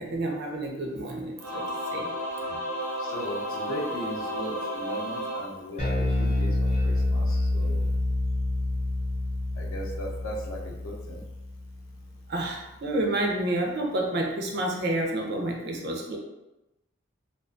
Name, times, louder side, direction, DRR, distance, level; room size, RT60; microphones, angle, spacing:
voice 1, 0.0-1.6 1.9-2.1 12.3-16.2, right 1 dB, 50° right, 1 dB, 0.4 m, -29 dB
Singing / Musical instrument, 1.4-6.2, equal, 85° right, 0.7 m, -33 dB
voice 2, 3.0-7.8 9.6-11.2, equal, 75° left, -1 dB, 0.6 m, -37 dB
Bass guitar, 5.8-12.2, left 2 dB, 30° left, 0.6 m, -27 dB
2.3 x 2.2 x 2.5 m, 0.95 s
head